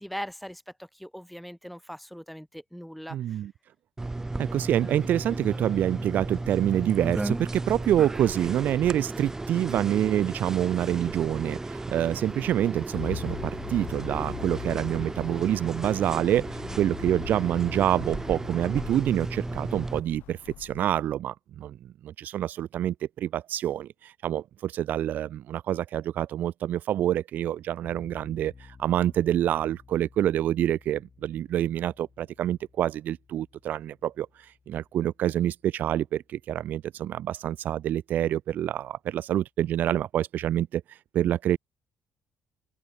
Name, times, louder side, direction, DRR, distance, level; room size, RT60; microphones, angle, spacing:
voice 1, 0.0-3.4, equal, ahead, 1.6 m, -40 dB
voice 2, 3.1-3.5 4.4-21.7 22.0-41.6, right 11 dB, 65° right, 1.3 m, -27 dB
sound 1, 4.0-20.0, right 2 dB, 15° right, 1.6 m, -35 dB
sound 2, 12.9-21.0, left 16 dB, 80° left, 1.0 m, -41 dB
sound 3, 27.8-36.7, left 5 dB, 35° left, 8.0 m, -55 dB
open air
cardioid pair, 85°, 3 cm